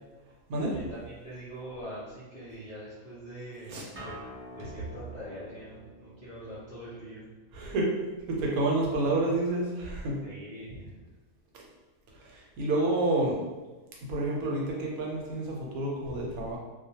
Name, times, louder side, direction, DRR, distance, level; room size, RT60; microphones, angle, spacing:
voice 1, 0.7-4.1 4.4-7.2 10.2-11.0, equal, 45° left, -11 dB, 0.6 m, -43 dB
Acoustic guitar, 4.0-9.1, equal, 40° right, 0.8 m, -49 dB
voice 2, 7.5-7.9 8.3-10.2 12.2-13.4 14.0-16.6, right 2 dB, 75° right, -2 dB, 1.1 m, -29 dB
2.4 x 2.1 x 2.7 m, 1.2 s
omnidirectional pair, 1.6 m